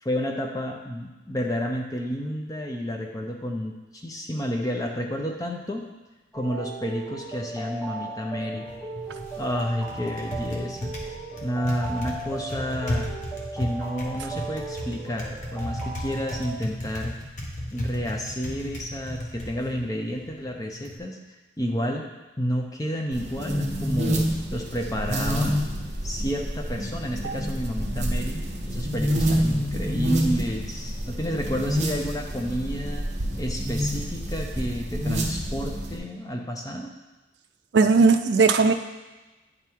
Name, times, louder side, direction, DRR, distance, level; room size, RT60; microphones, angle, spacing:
voice 1, 0.0-5.8 6.3-8.7 9.4-10.9 11.4-13.1 13.5-17.1 17.7-21.2 21.6-22.1 22.4-24.3 24.5-25.6 26.0-33.1 33.4-36.9, equal, 20° left, 1 dB, 0.5 m, -30 dB
sound 1, 6.3-16.5, right 3 dB, ahead, 1.0 m, -37 dB
Typing, 8.6-21.0, left 1 dB, 40° left, 1.0 m, -35 dB
sound 2, 23.1-36.0, equal, 35° right, 1.0 m, -28 dB
voice 2, 37.7-38.7, right 4 dB, 65° right, 7 dB, 0.4 m, -18 dB
9.6 x 3.5 x 4.5 m, 1.1 s
head